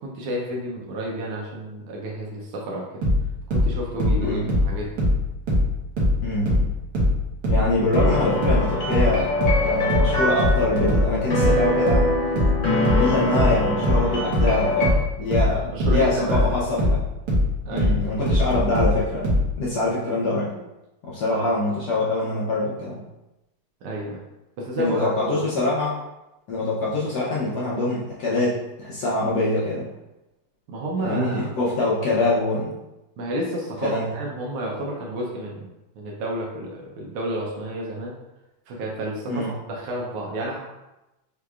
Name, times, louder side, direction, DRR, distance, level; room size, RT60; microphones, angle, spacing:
voice 1, 0.0-2.9 3.5-5.0 15.7-16.6 17.7-17.9 21.3-21.5 23.8-24.2 24.6-25.4 30.7-31.5 33.2-35.7 36.0-38.1 38.7-40.6, right 1 dB, 80° right, -2 dB, 1.6 m, -30 dB
sound 1, 3.0-6.2 6.5-19.5, left 1 dB, 50° right, 1.5 m, -21 dB
voice 2, 4.2-4.5 6.2-6.6 7.5-9.3 9.6-12.1 13.0-17.0 17.7-20.5 21.0-23.0 24.8-26.0 26.5-29.9 31.0-32.7 33.8-34.1 39.3-39.5, left 2 dB, 70° left, -6 dB, 1.0 m, -24 dB
sound 2, 7.9-14.9, left 1 dB, 45° left, 1.1 m, -24 dB
5.9 x 2.9 x 2.3 m, 0.96 s
omnidirectional pair, 2.4 m